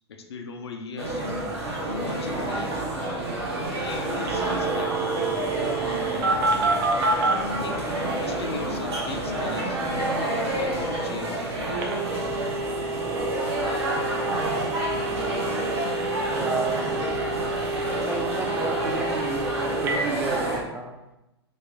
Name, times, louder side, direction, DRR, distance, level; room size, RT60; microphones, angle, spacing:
voice 1, 0.1-1.4 2.0-2.8 3.6-5.5 5.8-6.8 7.5-9.8 10.5-11.6, left 4 dB, 65° left, 5 dB, 0.5 m, -39 dB
sound 1, 1.0-20.6, right 1 dB, 70° right, 1.1 m, -29 dB
Telephone, 4.3-7.4 11.8-20.0, right 3 dB, 55° right, 0.7 m, -29 dB
voice 2, 16.3-17.4 17.9-21.0, right 4 dB, 10° right, 2 dB, 0.4 m, -32 dB
3.1 x 3.1 x 4.1 m, 0.93 s
figure-of-eight pair, 100°, 14 cm